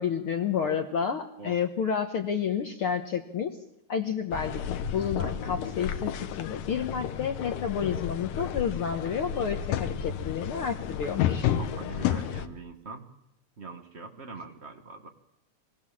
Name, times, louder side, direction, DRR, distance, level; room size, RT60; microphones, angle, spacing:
voice 1, 0.0-3.6 3.9-11.5, left 7 dB, 65° left, 5 dB, 1.3 m, -30 dB
sound 1, 4.3-12.5, left 9 dB, 80° left, 2.6 m, -31 dB
voice 2, 11.6-13.1 13.6-15.1, right 3 dB, 60° right, 5 dB, 0.6 m, -43 dB
24.5 x 17.0 x 7.3 m, 0.82 s
omnidirectional pair, 3.7 m